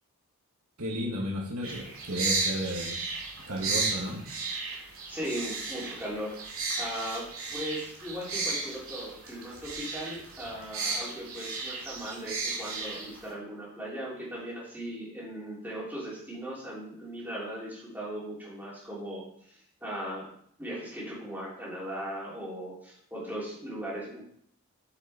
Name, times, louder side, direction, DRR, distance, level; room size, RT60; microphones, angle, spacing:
voice 1, 0.8-3.0 3.5-4.2, equal, 90° right, -2 dB, 2.0 m, -33 dB
sound 1, 1.6-13.3, right 3 dB, 65° right, 2.6 m, -34 dB
voice 2, 5.1-6.4 6.8-20.3 20.6-24.2, equal, 10° right, -7 dB, 3.3 m, -38 dB
8.2 x 6.4 x 4.3 m, 0.67 s
head